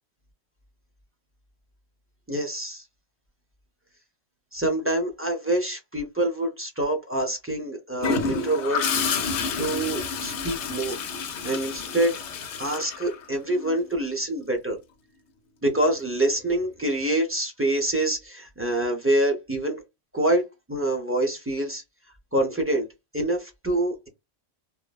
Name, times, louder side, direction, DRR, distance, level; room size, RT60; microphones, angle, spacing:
voice 1, 2.3-2.8 4.5-8.8 9.2-11.0 11.4-12.2 12.6-14.8 15.6-19.8 20.1-20.4 20.7-21.8 22.3-22.9 23.1-24.1, right 1 dB, 25° right, 0.3 m, -26 dB
Gurgling / Toilet flush, 8.0-13.7 15.8-16.0, left 5 dB, 85° left, 0.9 m, -29 dB
3.0 x 2.0 x 2.2 m
omnidirectional pair, 1.1 m